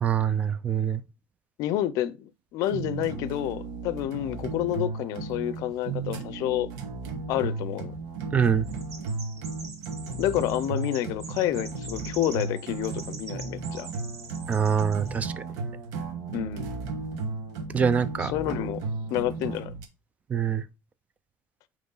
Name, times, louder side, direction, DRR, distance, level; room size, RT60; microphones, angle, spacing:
voice 1, 0.0-1.0 8.3-8.7 14.5-15.3 17.7-18.3 20.3-20.6, right 7 dB, 20° right, 0.4 m, -24 dB
voice 2, 1.6-6.7 7.3-7.9 10.2-13.9 16.3-16.7 18.2-19.7, left 12 dB, 60° left, 0.5 m, -29 dB
sound 1, 2.6-19.9, right 3 dB, 75° right, 1.2 m, -35 dB
Chirp tweet, 8.6-15.2, right 4 dB, 55° right, 1.6 m, -45 dB
9.1 x 3.1 x 3.9 m
cardioid pair, 160°, 6 cm